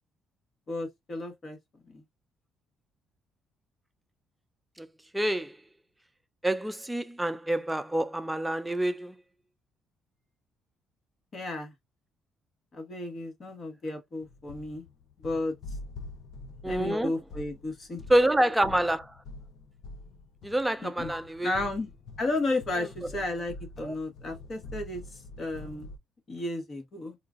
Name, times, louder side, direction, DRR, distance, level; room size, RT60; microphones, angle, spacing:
voice 1, 0.7-1.6 1.9-2.0 11.3-11.7 12.7-14.8 15.2-15.5 16.6-18.0 20.8-21.9 22.2-25.0 25.4-25.9 26.3-27.1, left 2 dB, 45° left, 1.3 m, -33 dB
voice 2, 5.1-5.6 6.4-9.1 16.6-17.1 18.1-19.1 20.4-21.5 23.8-24.0, right 1 dB, 10° right, 0.3 m, -27 dB
sound 1, 14.2-26.0, left 2 dB, 70° left, 0.7 m, -45 dB
3.8 x 2.4 x 2.4 m
cardioid pair, 90°, 0 cm